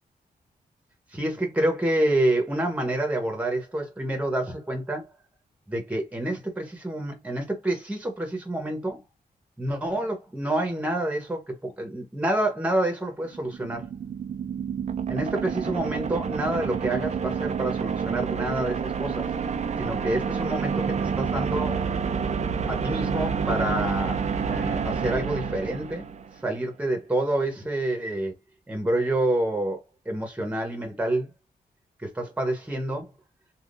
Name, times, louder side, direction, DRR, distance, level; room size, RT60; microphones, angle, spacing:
voice 1, 1.1-5.0 5.7-9.0 9.6-13.9 15.1-19.2 19.8-21.9 22.7-26.1 26.4-28.4 28.7-31.3 32.0-33.1, right 1 dB, 10° right, 1.0 m, -28 dB
sound 1, 13.3-26.4, right 6 dB, 45° right, 0.4 m, -28 dB
3.6 x 2.4 x 2.5 m
wide cardioid pair, 125°, 16 cm